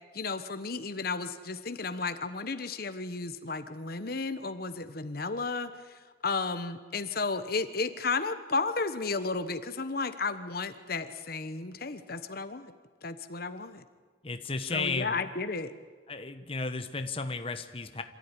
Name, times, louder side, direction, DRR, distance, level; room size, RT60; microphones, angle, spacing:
voice 1, 0.1-12.7 13.0-13.8 14.7-15.7, left 4 dB, 55° left, 10 dB, 1.2 m, -33 dB
voice 2, 14.2-15.3 16.1-18.0, left 3 dB, 30° left, 7 dB, 1.2 m, -34 dB
26.5 x 14.5 x 9.9 m, 1.5 s
head